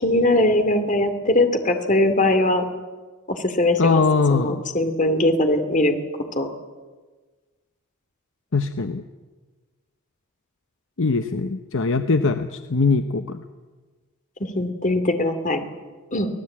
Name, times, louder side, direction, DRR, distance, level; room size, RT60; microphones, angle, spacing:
voice 1, 0.0-2.6 3.3-4.0 4.3-6.0 6.4-6.5 14.4-15.6 16.1-16.3, left 1 dB, 35° left, 7 dB, 2.5 m, -20 dB
voice 2, 3.8-4.6 8.5-9.0 11.0-13.4, left 4 dB, 60° left, 8 dB, 0.9 m, -21 dB
24.5 x 17.5 x 8.5 m, 1.4 s
head